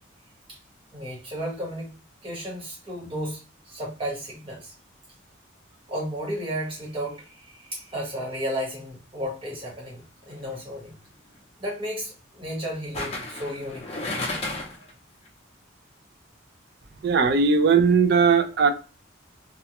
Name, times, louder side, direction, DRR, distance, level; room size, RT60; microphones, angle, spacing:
voice 1, 0.9-1.9 2.2-3.4 3.7-4.7 5.9-10.9 11.6-14.0 14.8-14.9, equal, 25° right, 1.1 m, -33 dB
sound 1, 10.3-10.6 12.9-14.9 15.3-15.4, left 2 dB, 30° left, 0.5 m, -32 dB
voice 2, 17.0-18.7, right 5 dB, 55° right, 0.3 m, -19 dB
2.3 x 2.1 x 2.8 m
head